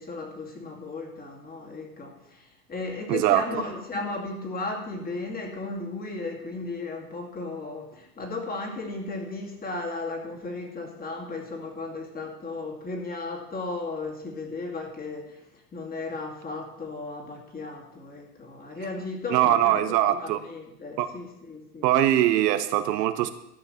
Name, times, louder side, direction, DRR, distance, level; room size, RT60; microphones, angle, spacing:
voice 1, 0.0-21.9, left 3 dB, 20° left, 2 dB, 2.3 m, -35 dB
voice 2, 3.1-3.4 19.3-20.4 21.0-21.1 21.8-23.3, right 12 dB, 80° right, 10 dB, 1.1 m, -22 dB
12.5 x 5.9 x 6.7 m, 0.81 s
supercardioid pair, 135°, 48 cm